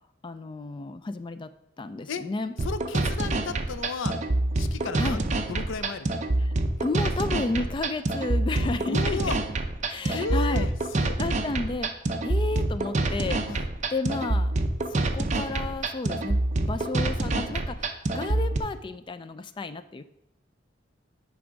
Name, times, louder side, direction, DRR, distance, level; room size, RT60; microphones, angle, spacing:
voice 1, 0.2-1.5 1.8-2.5 5.0-5.2 6.4-6.6 6.8-9.4 9.9-10.7 11.2-11.9 12.2-13.4 13.9-14.5 14.9-20.0, left 3 dB, 25° left, 12 dB, 0.3 m, -32 dB
voice 2, 2.6-4.2 4.6-6.1 8.5-9.4 10.1-10.7 10.9-11.2 13.5-13.7, left 4 dB, 90° left, 12 dB, 0.5 m, -34 dB
sound 1, 2.6-18.6, right 2 dB, 40° right, 0.6 m, -26 dB
9.5 x 3.5 x 5.1 m, 0.83 s
head